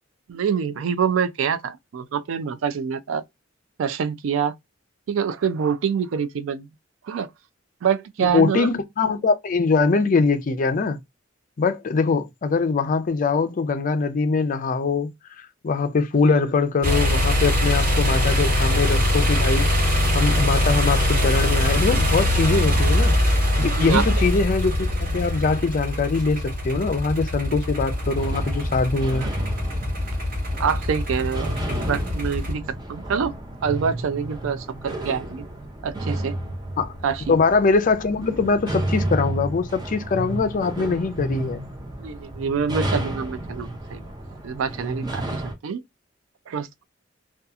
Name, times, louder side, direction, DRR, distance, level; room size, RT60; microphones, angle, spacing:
voice 1, 0.3-3.2 3.8-4.5 5.1-6.7 7.1-7.3 7.8-8.7 16.3-16.4 23.8-24.0 29.2-29.5 30.6-31.5 31.8-32.6 32.9-33.3 33.6-35.5 35.8-36.3 37.0-37.4 42.0-44.0 44.4-45.8 46.5-46.8, right 6 dB, 75° right, 0.4 m, -26 dB
voice 2, 8.2-11.0 11.6-15.1 15.4-19.7 20.1-23.2 23.6-29.3 36.8-36.9 37.3-41.6, left 4 dB, 40° left, 0.4 m, -22 dB
sound 1, 16.8-32.5, left 1 dB, 50° right, 1.1 m, -22 dB
sound 2, 27.7-45.5, right 1 dB, 20° right, 0.6 m, -32 dB
2.7 x 2.3 x 2.3 m
head